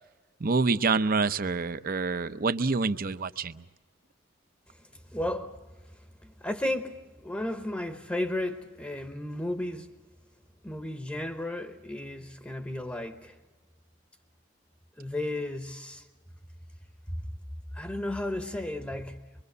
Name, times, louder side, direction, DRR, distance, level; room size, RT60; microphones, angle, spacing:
voice 1, 0.4-3.6, right 4 dB, 50° right, 0.7 m, -27 dB
voice 2, 4.7-5.6 6.2-9.9 10.6-13.4 15.0-16.0 17.1-17.3 17.7-19.2, left 1 dB, 10° left, 0.9 m, -34 dB
24.5 x 23.5 x 6.7 m
head